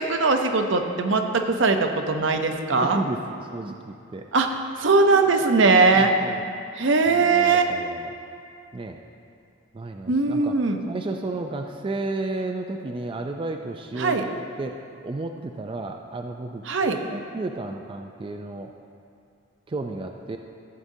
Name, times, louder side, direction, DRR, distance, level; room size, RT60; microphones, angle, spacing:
voice 1, 0.0-3.0 4.3-6.1 6.8-7.7 10.1-10.8 14.0-14.3 16.7-17.0, right 3 dB, 70° right, 5 dB, 0.7 m, -20 dB
voice 2, 2.8-4.2 5.3-5.5 5.9-6.5 7.1-8.1 8.7-9.0 9.7-10.5 10.9-14.2 14.6-14.8 15.0-16.6 17.1-18.7 19.7-20.4, right 2 dB, 25° right, 4 dB, 0.3 m, -32 dB
14.5 x 7.5 x 2.7 m, 2.5 s
head